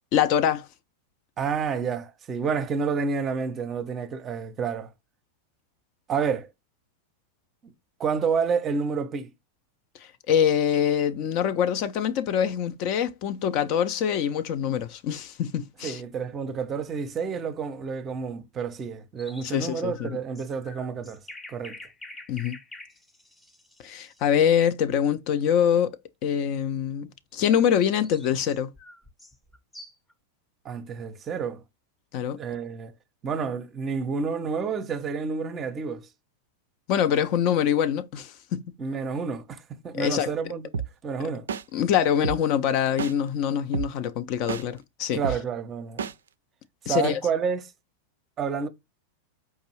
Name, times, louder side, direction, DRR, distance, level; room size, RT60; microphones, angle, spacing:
voice 1, 0.1-0.7 10.0-16.0 19.4-20.1 22.3-22.6 23.8-26.0 26.2-28.7 32.1-32.4 36.9-38.6 39.9-40.3 41.7-45.2 46.9-47.2, left 9 dB, 40° left, 0.4 m, -24 dB
voice 2, 1.4-4.9 6.1-6.5 7.6-7.7 8.0-9.3 15.8-21.2 21.5-21.8 30.6-31.6 32.4-32.9 33.2-36.1 38.8-40.7 41.0-41.5 45.1-46.1 46.8-47.7 48.4-48.7, right 6 dB, 25° right, 0.6 m, -29 dB
sound 1, 19.2-24.3 27.7-30.1, left 1 dB, 10° left, 0.7 m, -46 dB
sound 2, 40.7-40.9 41.5-41.6 42.2-42.4 43.0-43.1 43.7-43.9 44.5-44.6 45.2-45.4 46.0-46.1, right 6 dB, 65° right, 0.3 m, -28 dB
4.7 x 2.6 x 2.9 m
figure-of-eight pair, 90°, 0 cm